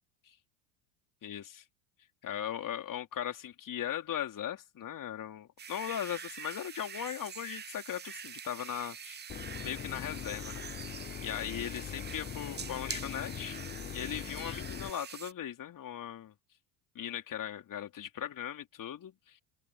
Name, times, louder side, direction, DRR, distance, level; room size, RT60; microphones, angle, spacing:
voice 1, 1.2-1.6 2.2-9.2 9.6-10.6 11.2-13.6 13.9-16.3 16.9-19.4, left 10 dB, 40° left, 4.0 m, -38 dB
sound 1, 5.6-15.3, right 7 dB, 20° right, 0.9 m, -45 dB
Boat Water vehicle / Engine, 9.3-14.9, left 10 dB, 20° left, 0.5 m, -42 dB
open air
hypercardioid pair, 70°, 49 cm